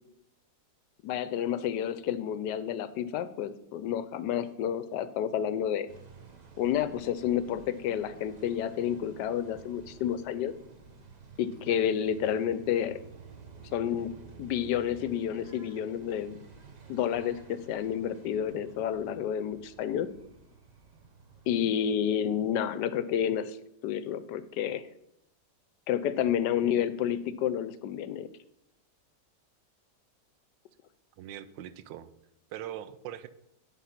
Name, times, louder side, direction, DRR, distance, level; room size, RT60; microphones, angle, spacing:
voice 1, 1.0-5.9 6.6-10.5 11.4-13.0 13.7-14.1 14.4-16.4 16.9-20.1 21.5-23.6 23.8-24.8 25.9-28.3, left 9 dB, 75° left, 13 dB, 1.1 m, -30 dB
sound 1, 5.9-21.9, right 5 dB, 45° right, 0.5 m, -52 dB
voice 2, 31.2-32.1 32.5-33.3, right 11 dB, 85° right, 14 dB, 1.3 m, -41 dB
10.0 x 4.0 x 5.8 m, 0.80 s
omnidirectional pair, 2.0 m